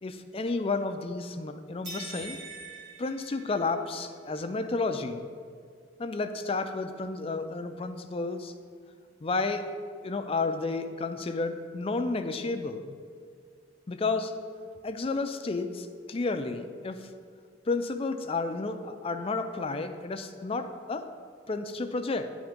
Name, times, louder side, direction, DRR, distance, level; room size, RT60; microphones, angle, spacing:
voice 1, 0.0-2.4 3.0-5.3 6.0-8.5 9.2-9.7 10.0-12.9 13.9-14.3 14.8-17.1 17.7-21.1 21.5-22.4, left 3 dB, 30° left, 8 dB, 0.4 m, -31 dB
sound 1, 1.8-4.0, right 3 dB, 60° right, 2.1 m, -43 dB
10.5 x 3.5 x 5.1 m, 2.1 s
head